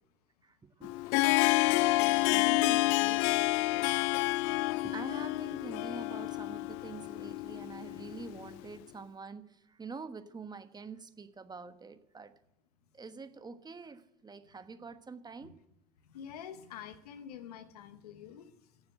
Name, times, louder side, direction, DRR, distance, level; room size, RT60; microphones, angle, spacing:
voice 1, 0.4-1.2 1.7-3.2 3.7-4.2 4.6-12.3 12.9-15.5, right 4 dB, 20° right, 10 dB, 1.2 m, -46 dB
Harp, 0.8-8.6, left 21 dB, 65° left, 0.4 m, -29 dB
voice 2, 16.0-18.5, left 8 dB, 80° left, 11 dB, 1.2 m, -47 dB
16.5 x 7.1 x 7.8 m, 0.87 s
hypercardioid pair, 75°, 20 cm